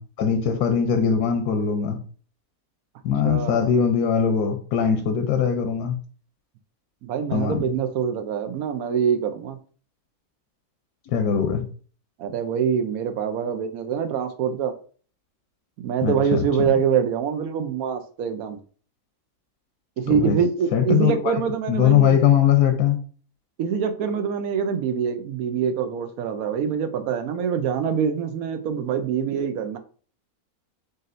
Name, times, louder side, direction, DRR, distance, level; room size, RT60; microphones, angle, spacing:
voice 1, 0.0-2.0 3.0-6.0 7.3-7.7 11.1-11.7 16.0-16.7 20.1-20.4 20.7-21.4 21.7-23.0, left 8 dB, 90° left, 1.2 m, -21 dB
voice 2, 3.2-3.7 7.0-9.6 12.2-14.7 15.8-18.6 20.0-22.2 23.6-29.8, right 7 dB, 70° right, 1.1 m, -25 dB
5.1 x 4.1 x 2.6 m
omnidirectional pair, 1.6 m